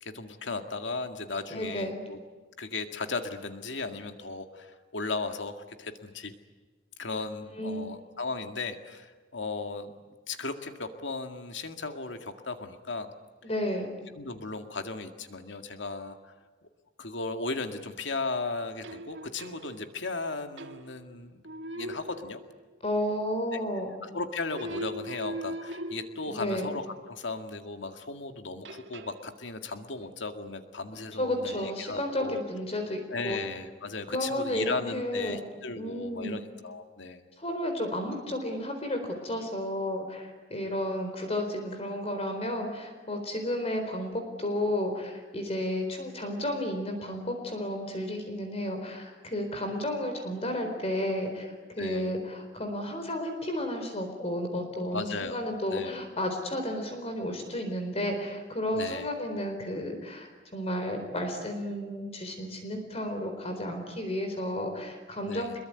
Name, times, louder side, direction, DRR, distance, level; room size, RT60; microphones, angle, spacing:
voice 1, 0.0-2.2 2.6-5.5 5.8-6.3 7.0-10.0 10.3-13.1 14.2-16.3 17.0-21.4 21.7-22.4 24.0-32.4 33.1-37.2 51.8-52.1 54.9-56.0 58.7-59.1 65.3-65.5, left 3 dB, 85° left, 6 dB, 2.1 m, -36 dB
voice 2, 1.5-2.0 7.5-8.0 13.4-13.9 22.8-23.9 26.3-26.7 31.2-33.4 34.1-35.4 35.8-36.4 37.4-65.6, left 1 dB, 35° left, 5 dB, 4.2 m, -32 dB
sound 1, 18.8-20.1 20.6-21.1 21.4-22.8 24.5-27.0 28.6-29.3, right 1 dB, 80° right, 1.9 m, -40 dB
27.0 x 22.0 x 9.7 m, 1.3 s
head